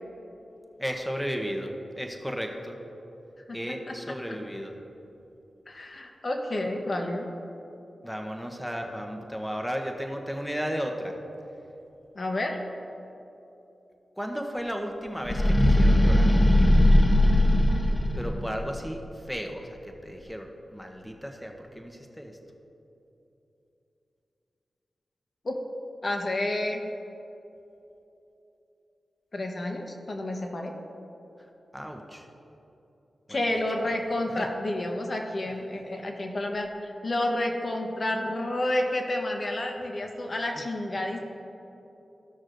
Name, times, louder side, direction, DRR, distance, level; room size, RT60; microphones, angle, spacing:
voice 1, 0.8-2.8 3.5-4.7 8.0-11.1 14.2-16.4 18.2-22.3 31.7-32.2 33.3-33.4 34.4-34.5 35.4-35.5, equal, ahead, 3 dB, 0.9 m, -34 dB
voice 2, 3.5-4.4 5.7-7.3 12.1-12.6 25.4-25.6 26.0-26.8 29.3-30.8 33.3-41.2, left 1 dB, 50° left, 2 dB, 1.0 m, -30 dB
sound 1, 15.2-18.5, left 1 dB, 25° left, 0.9 m, -19 dB
15.0 x 6.1 x 2.6 m, 3.0 s
cardioid pair, 45°, 0 cm